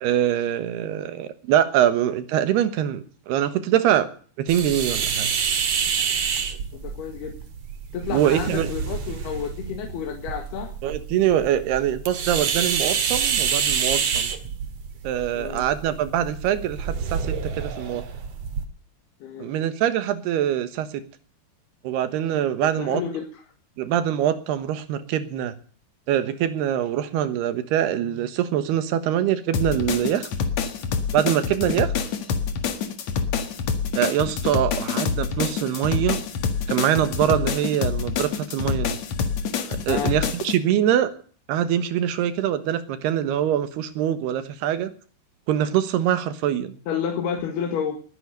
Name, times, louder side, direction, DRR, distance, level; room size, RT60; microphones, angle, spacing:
voice 1, 0.0-4.1 4.4-5.3 8.1-8.7 10.8-14.3 15.0-18.0 19.4-21.0 21.8-23.0 23.8-25.5 26.1-30.3 31.1-31.9 33.9-36.2 36.7-39.0 39.8-41.1 41.5-44.9 45.5-46.8, right 10 dB, 85° right, 12 dB, 3.4 m, -23 dB
sound 1, 4.5-18.6, right 7 dB, 50° right, 2.4 m, -28 dB
voice 2, 6.7-7.4 7.9-10.7 15.4-15.7 19.2-19.5 22.6-23.4 31.6-31.8 39.9-40.2 46.9-48.0, left 7 dB, 80° left, 3 dB, 3.8 m, -30 dB
sound 2, 29.5-40.6, left 6 dB, 55° left, 2.4 m, -26 dB
20.5 x 10.0 x 6.5 m, 0.43 s
omnidirectional pair, 4.5 m